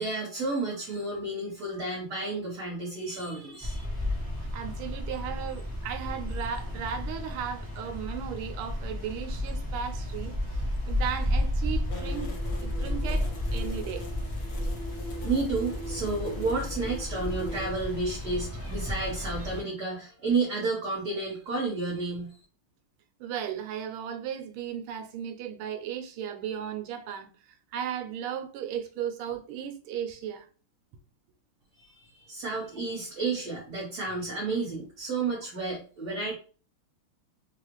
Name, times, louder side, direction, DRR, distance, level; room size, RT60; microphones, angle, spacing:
voice 1, 0.0-3.8 15.2-22.3 31.8-36.3, right 3 dB, 50° right, 1.6 m, -31 dB
sound 1, 3.6-19.6, left 1 dB, 15° right, 0.7 m, -32 dB
voice 2, 4.5-10.3 10.9-12.3 12.6-14.1 23.2-27.3 27.7-30.5, right 8 dB, 90° right, 1.5 m, -35 dB
sound 2, 11.9-17.6, left 1 dB, 70° left, 1.5 m, -42 dB
3.6 x 2.4 x 3.0 m
omnidirectional pair, 2.3 m